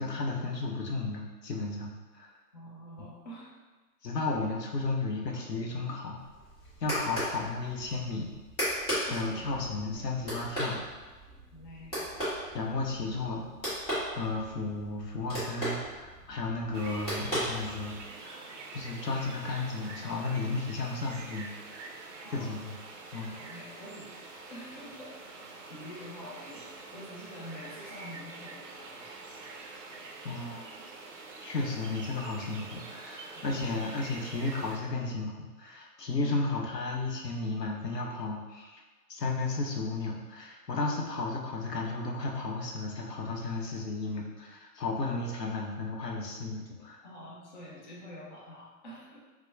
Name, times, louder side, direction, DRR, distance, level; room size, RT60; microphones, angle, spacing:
voice 1, 0.0-2.3 4.0-6.2 6.8-8.3 9.0-10.8 12.5-13.5 14.1-21.5 22.3-22.7 23.1-23.4 30.2-30.8 31.4-38.8 39.1-47.0, left 3 dB, 90° left, -1 dB, 0.7 m, -34 dB
voice 2, 2.5-3.5 4.1-4.3 9.1-10.1 11.5-12.1 22.2-22.6 23.3-24.1 24.5-25.4 25.7-29.5 33.3-33.7 36.2-36.4 47.0-49.2, equal, 30° left, -4 dB, 0.4 m, -47 dB
sound 1, 6.2-18.1, equal, 15° left, 1.0 m, -37 dB
sound 2, 16.7-34.8, right 3 dB, 55° right, 0.5 m, -46 dB
4.1 x 2.1 x 2.2 m, 1.3 s
figure-of-eight pair, 120°, 47 cm